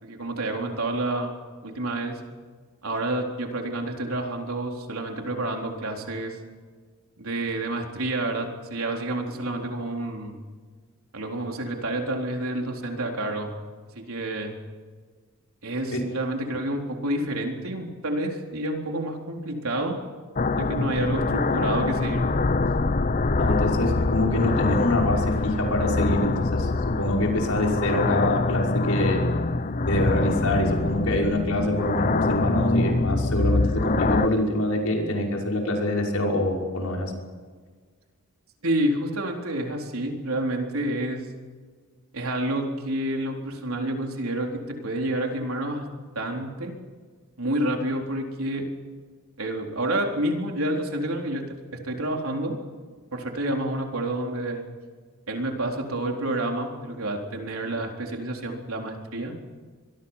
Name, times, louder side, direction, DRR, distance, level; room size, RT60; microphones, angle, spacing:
voice 1, 0.0-1.3 1.6-2.2 2.8-6.4 7.2-10.3 11.1-13.5 14.0-14.5 15.6-20.0 20.6-22.2 38.6-41.3 42.1-45.8 46.2-46.7 47.4-48.6 49.4-51.4 51.8-52.6 53.1-54.6 55.3-59.3, right 1 dB, 75° right, 2 dB, 4.0 m, -29 dB
sound 1, 20.4-34.3, left 3 dB, 40° left, 0.7 m, -24 dB
voice 2, 23.4-29.2 29.9-37.1, left 1 dB, 85° left, 0 dB, 5.9 m, -25 dB
25.0 x 22.5 x 5.8 m, 1.5 s
head